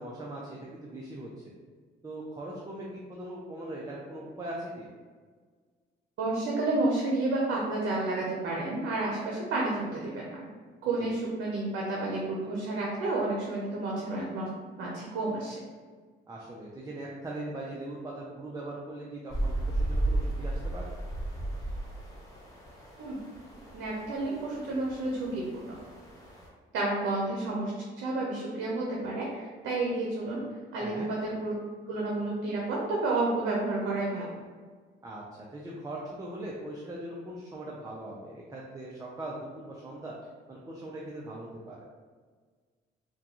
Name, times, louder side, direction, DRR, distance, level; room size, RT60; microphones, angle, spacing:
voice 1, 0.0-1.4 2.0-4.9 11.0-11.1 16.3-20.8 30.8-31.1 35.0-35.2 35.5-40.1 40.5-41.8, right 1 dB, 20° right, -4 dB, 0.5 m, -40 dB
voice 2, 6.2-10.5 10.8-15.6 23.0-23.2 23.7-25.8 26.7-27.7 28.0-30.4 30.7-31.6 31.9-34.3, right 2 dB, 80° right, -3 dB, 0.7 m, -30 dB
sound 1, 19.3-26.5, right 1 dB, 15° left, 1.2 m, -34 dB
3.6 x 2.3 x 2.9 m, 1.5 s
cardioid pair, 90°, 20 cm